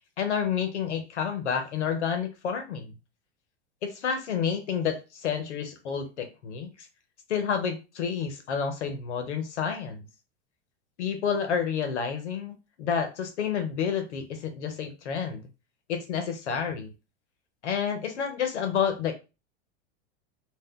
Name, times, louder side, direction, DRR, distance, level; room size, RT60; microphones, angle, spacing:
voice 1, 0.2-2.9 3.8-6.7 7.3-10.1 11.0-15.5 15.9-16.9 17.6-19.1, left 7 dB, 90° left, 5 dB, 0.9 m, -29 dB
2.5 x 2.3 x 3.6 m, 0.28 s
hypercardioid pair, 110°, 33 cm